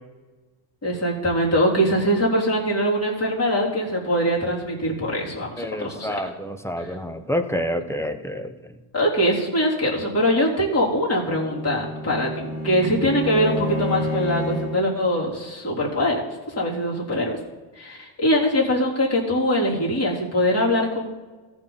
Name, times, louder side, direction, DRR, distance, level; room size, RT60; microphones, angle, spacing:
voice 1, 0.8-6.2 6.8-6.9 8.9-16.2 16.6-17.4 17.8-21.1, equal, 30° left, -4 dB, 3.6 m, -22 dB
voice 2, 5.6-8.7, equal, 5° left, 9 dB, 0.8 m, -28 dB
Bowed string instrument, 11.0-14.9, left 1 dB, 80° left, 3.1 m, -29 dB
14.5 x 6.0 x 4.0 m, 1.3 s
supercardioid pair, 90°, 50 cm